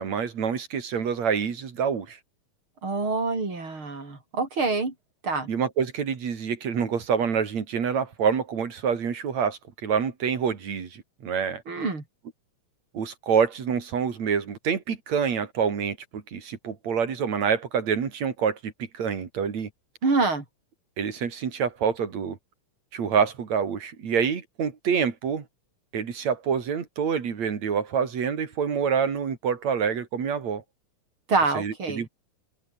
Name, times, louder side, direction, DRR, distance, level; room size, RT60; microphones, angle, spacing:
voice 1, 0.0-2.2 5.5-11.6 12.9-19.7 21.0-22.4 22.9-25.5 25.9-30.6 31.6-32.1, right 7 dB, 60° right, 4.1 m, -27 dB
voice 2, 2.8-4.9 5.2-5.5 11.7-12.0 20.0-20.4 31.3-32.1, right 3 dB, 40° right, 6.4 m, -26 dB
omnidirectional pair, 3.6 m